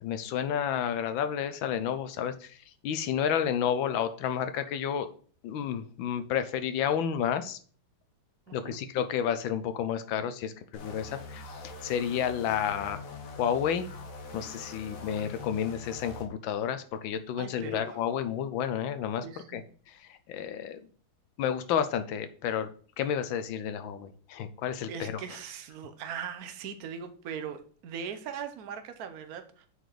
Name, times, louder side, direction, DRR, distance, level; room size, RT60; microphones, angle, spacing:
voice 1, 0.0-2.6 2.8-5.1 5.4-7.6 8.5-13.0 13.4-13.9 14.3-19.2 19.5-19.6 19.9-20.8 21.4-22.7 23.0-25.2, left 8 dB, 75° left, 10 dB, 1.4 m, -31 dB
voice 2, 8.5-8.8 17.4-18.0 19.2-19.6 24.9-29.7, right 7 dB, 55° right, 8 dB, 1.1 m, -40 dB
sound 1, 10.7-16.3, left 3 dB, 50° left, 1.2 m, -43 dB
7.9 x 4.2 x 4.9 m, 0.43 s
omnidirectional pair, 2.3 m